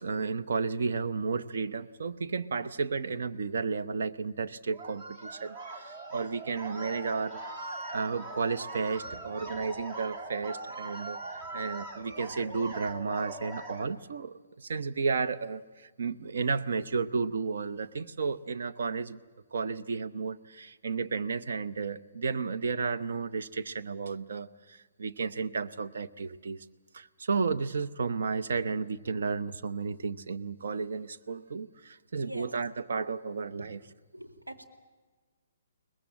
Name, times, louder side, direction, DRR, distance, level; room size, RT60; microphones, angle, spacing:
voice 1, 0.0-7.4 7.9-11.2 11.5-19.2 19.5-26.6 26.9-33.8, right 5 dB, 60° right, 10 dB, 0.9 m, -33 dB
sound 1, 4.7-13.9, right 2 dB, 40° right, 2.3 m, -41 dB
voice 2, 34.1-34.6, right 1 dB, 85° right, 3 dB, 2.6 m, -43 dB
22.5 x 20.0 x 8.7 m, 1.3 s
figure-of-eight pair, 125°, 0 cm